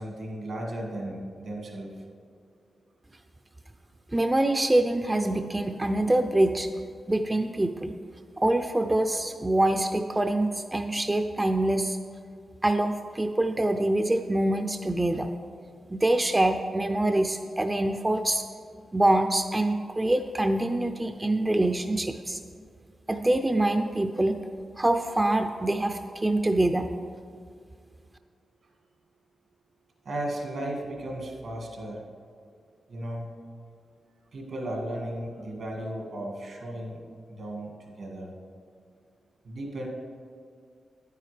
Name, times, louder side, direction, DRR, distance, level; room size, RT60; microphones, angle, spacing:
voice 1, 0.0-1.9 30.1-32.1 32.9-33.3 34.3-37.0 37.3-38.3 39.4-39.9, right 1 dB, 75° right, 0 dB, 1.8 m, -35 dB
voice 2, 4.1-6.7 7.1-7.9 8.4-12.0 12.6-15.3 15.9-18.4 18.9-22.4 23.1-24.4 24.8-26.9, right 1 dB, 20° right, 6 dB, 0.4 m, -25 dB
9.2 x 9.1 x 3.3 m, 2.2 s
cardioid pair, 55°, 0 cm